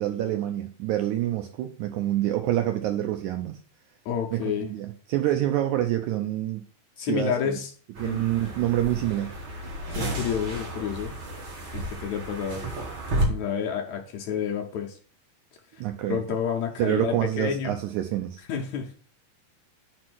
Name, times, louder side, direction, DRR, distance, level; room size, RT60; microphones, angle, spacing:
voice 1, 0.0-3.6 4.3-6.6 7.0-7.6 8.0-9.3 15.8-16.2 16.8-18.4, right 13 dB, 85° right, 5 dB, 1.7 m, -27 dB
voice 2, 4.1-4.7 7.0-7.7 8.0-8.2 9.9-11.1 11.7-12.6 13.3-15.0 15.7-15.8 16.1-17.7 18.5-18.9, left 7 dB, 75° left, 1 dB, 1.8 m, -29 dB
sound 1, 8.0-13.2, right 1 dB, 45° right, 2.1 m, -32 dB
5.2 x 4.4 x 6.1 m, 0.44 s
omnidirectional pair, 3.9 m